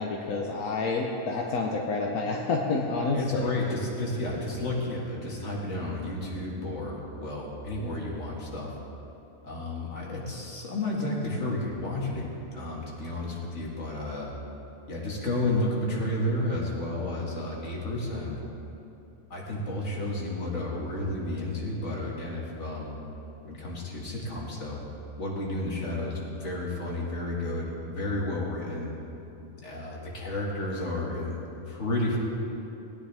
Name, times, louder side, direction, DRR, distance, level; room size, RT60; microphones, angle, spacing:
voice 1, 0.0-3.5, left 3 dB, 80° left, 0 dB, 1.3 m, -28 dB
voice 2, 3.1-8.7 9.4-14.3 14.9-18.4 19.3-23.0 23.4-24.8 25.2-28.9 29.6-31.4 31.7-32.2, left 1 dB, 55° left, -4 dB, 2.4 m, -32 dB
19.0 x 10.0 x 3.5 m, 2.9 s
omnidirectional pair, 1.5 m